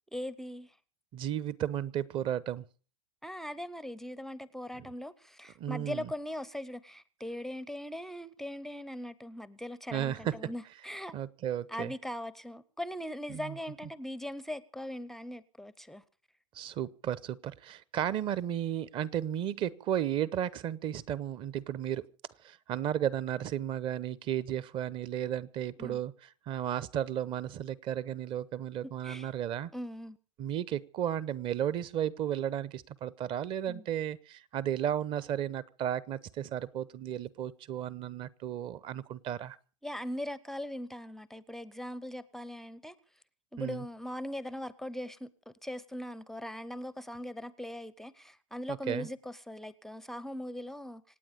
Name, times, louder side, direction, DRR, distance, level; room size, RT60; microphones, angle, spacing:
voice 1, 0.1-0.7 3.2-11.1 11.7-16.0 25.8-26.0 29.0-29.3 29.7-30.2 33.7-33.9 39.8-42.9 43.5-51.0, left 1 dB, ahead, 18 dB, 0.6 m, -40 dB
voice 2, 1.1-2.6 5.6-6.1 9.9-10.3 11.1-11.9 13.3-13.6 16.5-22.1 22.4-26.1 26.5-29.7 30.4-39.6 43.6-43.8 48.7-49.1, right 10 dB, 30° right, 20 dB, 0.9 m, -34 dB
26.5 x 9.1 x 5.2 m, 0.39 s
hypercardioid pair, 105°, 17 cm